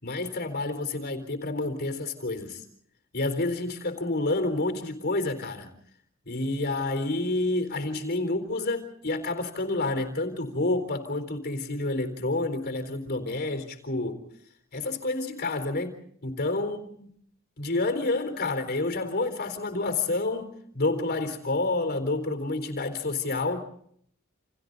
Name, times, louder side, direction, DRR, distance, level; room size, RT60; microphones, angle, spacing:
voice 1, 0.0-2.6 3.1-5.7 6.3-14.2 14.7-17.1 17.6-23.7, left 2 dB, 50° left, 4.0 m, -29 dB
30.0 x 29.0 x 4.1 m
head